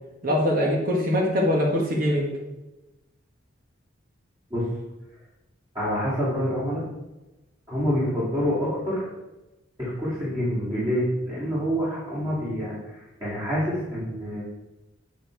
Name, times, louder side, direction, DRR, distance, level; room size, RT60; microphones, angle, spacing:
voice 1, 0.2-2.3, equal, 45° right, -1 dB, 1.5 m, -22 dB
voice 2, 5.7-6.8 7.7-9.0 9.8-14.4, equal, 20° right, -10 dB, 2.5 m, -27 dB
8.6 x 5.4 x 4.6 m, 1.0 s
head